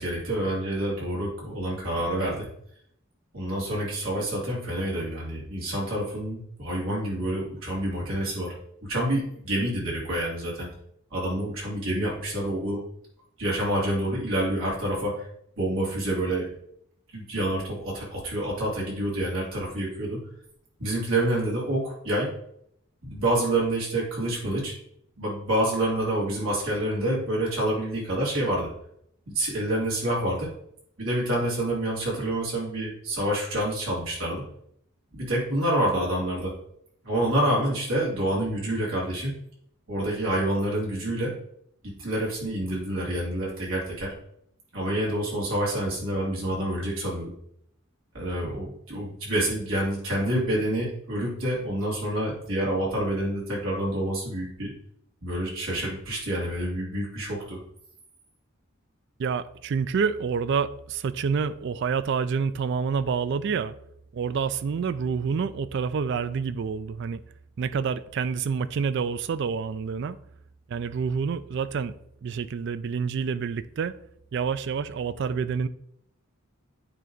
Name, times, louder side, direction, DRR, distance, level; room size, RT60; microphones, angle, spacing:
voice 1, 0.0-2.5 3.3-8.5 8.8-10.7 11.1-12.8 13.4-15.3 15.6-16.5 17.1-20.2 20.8-22.3 23.0-24.7 25.2-28.7 29.3-30.5 31.0-34.4 35.1-36.5 37.0-39.4 39.9-41.3 41.8-44.1 44.7-47.3 48.1-54.7 55.2-57.6, right 1 dB, 75° right, 2.9 m, -27 dB
voice 2, 59.2-63.7 64.1-67.2 67.6-70.2 70.7-71.9 72.2-73.9 74.3-75.7, right 6 dB, 55° right, 0.3 m, -28 dB
9.1 x 3.4 x 3.9 m
head